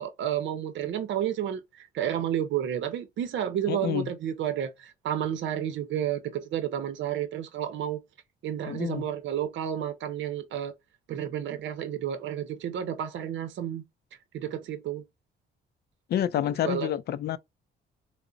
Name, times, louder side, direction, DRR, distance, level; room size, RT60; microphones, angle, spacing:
voice 1, 0.0-8.0 8.4-10.7 11.1-13.8 14.3-15.0 16.6-16.9, right 10 dB, 70° right, 0.6 m, -31 dB
voice 2, 3.7-4.1 8.7-9.1 16.1-17.4, left 11 dB, 55° left, 0.4 m, -28 dB
3.7 x 2.1 x 2.3 m
cardioid pair, 90°, 20 cm